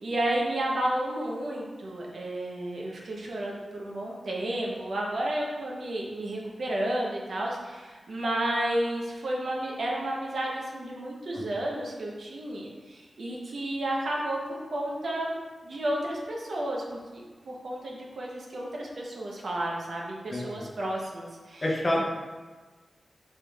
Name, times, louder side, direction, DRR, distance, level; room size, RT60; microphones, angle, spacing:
voice 1, 0.0-15.3 15.6-16.8 17.1-21.6, right 1 dB, 65° right, -2 dB, 0.8 m, -32 dB
voice 2, 20.3-20.7 21.6-22.0, left 1 dB, 30° left, -2 dB, 0.7 m, -28 dB
4.9 x 4.4 x 2.4 m, 1.3 s
wide cardioid pair, 140°, 0 cm